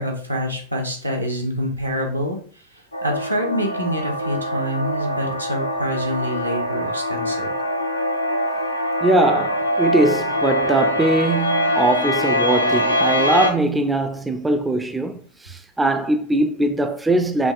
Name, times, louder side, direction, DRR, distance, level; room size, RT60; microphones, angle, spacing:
voice 1, 0.0-7.5, equal, 85° right, 0.8 m, -26 dB
sound 1, 2.9-13.5, equal, 90° left, 0.5 m, -23 dB
voice 2, 9.0-17.5, right 2 dB, 10° right, 0.3 m, -21 dB
4.9 x 2.8 x 2.5 m
figure-of-eight pair, 90°, 0 cm